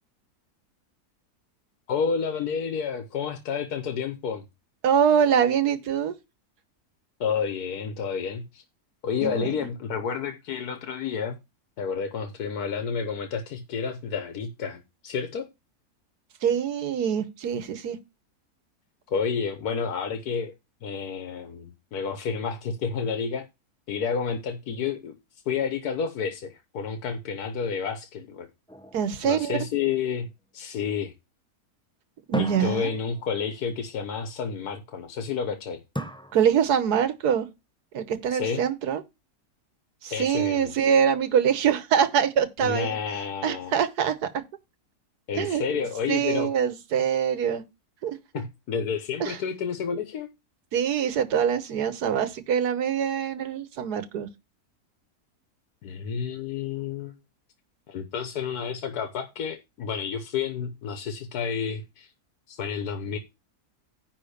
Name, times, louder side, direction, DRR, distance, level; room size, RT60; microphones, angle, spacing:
voice 1, 1.9-4.4 7.2-8.6 9.0-11.4 11.8-15.5 19.1-20.5 20.8-23.5 23.9-25.1 25.5-28.5 29.2-30.3 30.5-31.1 32.3-35.8 38.3-38.6 40.1-40.7 42.6-43.8 45.3-46.5 48.3-50.3 55.8-57.1 57.9-62.1 62.5-63.2, left 6 dB, 75° left, 1.5 m, -30 dB
voice 2, 4.8-6.1 9.2-9.5 16.4-18.0 28.9-29.7 32.3-32.9 36.3-37.5 37.9-39.0 40.0-43.0 43.4-44.4 45.3-45.6 46.1-47.6 48.0-48.2 49.2-49.4 50.7-54.3, right 8 dB, 90° right, 1.5 m, -24 dB
sound 1, 28.7-30.3 32.3-33.7 36.0-37.0, equal, 5° left, 0.3 m, -38 dB
10.0 x 3.7 x 6.5 m
omnidirectional pair, 1.6 m